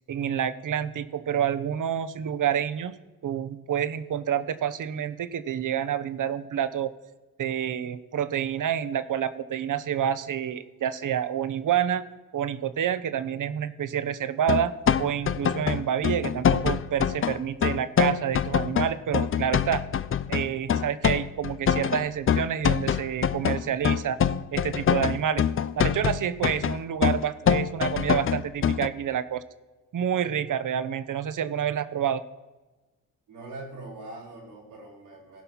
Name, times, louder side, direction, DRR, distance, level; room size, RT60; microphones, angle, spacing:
voice 1, 0.1-2.9 3.2-6.9 7.4-12.0 12.3-19.8 20.3-24.2 24.5-25.4 25.8-29.4 29.9-32.2, right 9 dB, 55° right, 14 dB, 0.8 m, -28 dB
sound 1, 14.5-28.9, left 8 dB, 35° left, 0.5 m, -25 dB
voice 2, 33.3-35.4, right 2 dB, 85° right, -6 dB, 4.0 m, -42 dB
16.5 x 5.6 x 6.1 m, 1.2 s
hypercardioid pair, 40°, 38 cm